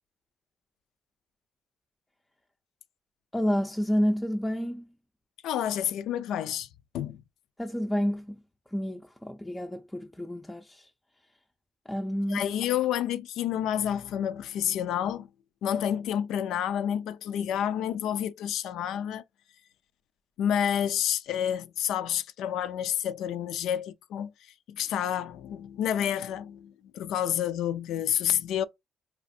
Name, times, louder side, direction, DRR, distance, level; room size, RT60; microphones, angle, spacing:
voice 1, 3.3-4.9 7.6-8.4 8.7-10.9 11.9-12.4, equal, 10° left, 0.4 m, -29 dB
voice 2, 5.4-6.7 6.9-7.2 12.3-15.3 15.6-19.2 20.4-28.6, left 10 dB, 80° left, 0.3 m, -29 dB
4.2 x 2.4 x 2.6 m
cardioid pair, 90°, 0 cm